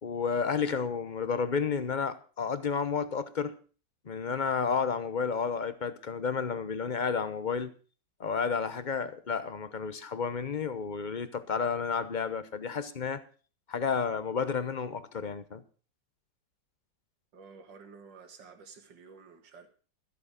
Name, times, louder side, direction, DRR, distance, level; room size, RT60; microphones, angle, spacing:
voice 1, 0.0-3.6 4.0-7.7 8.2-13.2 13.7-15.6, left 6 dB, 40° left, 0.7 m, -31 dB
voice 2, 17.3-19.7, right 5 dB, 70° right, 2.4 m, -51 dB
14.0 x 7.9 x 6.6 m
omnidirectional pair, 2.0 m